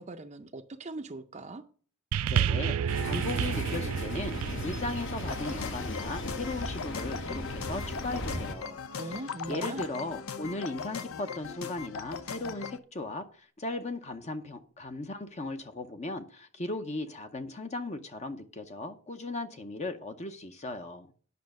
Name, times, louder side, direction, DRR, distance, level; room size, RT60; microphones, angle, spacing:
voice 1, 0.0-1.6 9.0-9.9, right 2 dB, 30° right, 0.5 m, -40 dB
sound 1, 2.1-6.7 7.5-7.6, right 8 dB, 80° right, 0.4 m, -31 dB
voice 2, 2.3-9.2 9.5-21.1, left 2 dB, 30° left, 0.7 m, -37 dB
sound 2, 2.9-8.6, left 1 dB, 60° left, 1.1 m, -36 dB
sound 3, 5.2-12.8, left 6 dB, 75° left, 0.7 m, -39 dB
9.4 x 5.6 x 6.4 m
head